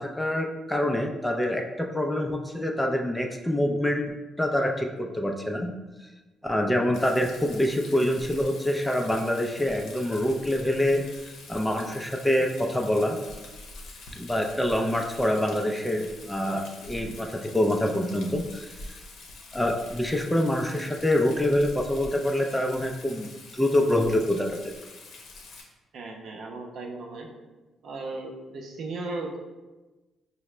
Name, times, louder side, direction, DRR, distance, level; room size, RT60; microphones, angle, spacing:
voice 1, 0.0-4.0 4.4-5.7 6.4-11.0 11.5-13.2 14.2-18.7 19.5-24.7, left 1 dB, 5° left, 2 dB, 0.4 m, -26 dB
Rain, 6.9-25.6, left 3 dB, 75° left, 0.7 m, -45 dB
voice 2, 25.9-27.3 27.8-29.4, right 2 dB, 65° right, 1 dB, 0.6 m, -36 dB
4.7 x 2.1 x 3.2 m, 1.2 s
cardioid pair, 90°, 0 cm